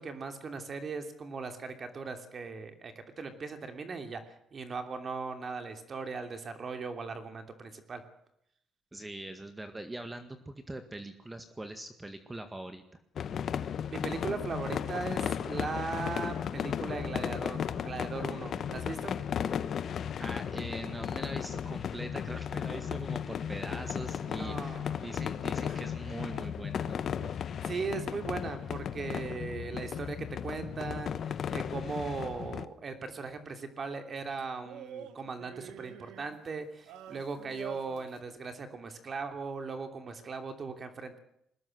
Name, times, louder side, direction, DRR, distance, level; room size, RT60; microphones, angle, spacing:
voice 1, 0.0-8.0 13.9-19.2 24.4-25.0 25.7-25.8 27.6-41.2, right 4 dB, 40° right, 7 dB, 3.0 m, -38 dB
voice 2, 8.9-12.8 20.2-24.8 25.0-27.1, right 1 dB, 15° right, 8 dB, 1.9 m, -42 dB
sound 1, 13.2-32.7, left 8 dB, 55° left, 1.2 m, -35 dB
sound 2, 14.0-18.7, left 9 dB, 85° left, 4.8 m, -54 dB
sound 3, 23.3-24.6 26.0-27.7 32.2-32.3 34.4-38.2, right 10 dB, 90° right, 1.7 m, -50 dB
21.5 x 19.0 x 7.9 m, 0.74 s
cardioid pair, 115°, 0 cm